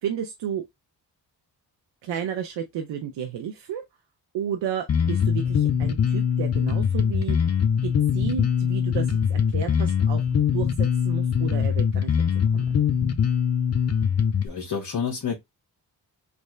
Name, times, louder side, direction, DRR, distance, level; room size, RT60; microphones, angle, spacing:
voice 1, 0.0-0.6 2.0-3.8 4.3-7.4 7.8-10.2 10.5-12.1 12.5-12.8, right 8 dB, 80° right, 0.7 m, -32 dB
Bass guitar, 4.9-14.5, left 7 dB, 35° left, 0.6 m, -22 dB
voice 2, 14.4-15.4, left 6 dB, 50° left, 1.3 m, -29 dB
3.3 x 2.6 x 3.2 m
cardioid pair, 60°, 43 cm